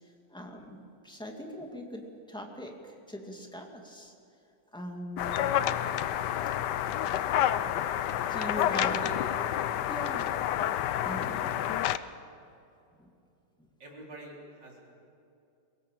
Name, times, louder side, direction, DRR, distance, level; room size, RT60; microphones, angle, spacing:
voice 1, 0.3-2.0 2.3-2.7 3.1-4.1 4.7-5.5 8.3-9.1 9.9-10.3 11.0-11.6 13.0-13.1, left 1 dB, 5° left, 1 dB, 2.2 m, -40 dB
sound 1, 5.2-12.0, left 11 dB, 75° left, 1.3 m, -29 dB
voice 2, 8.4-9.2 11.1-11.6 13.8-14.9, right 1 dB, 85° right, -2 dB, 4.7 m, -45 dB
23.0 x 18.0 x 7.6 m, 2.6 s
omnidirectional pair, 1.9 m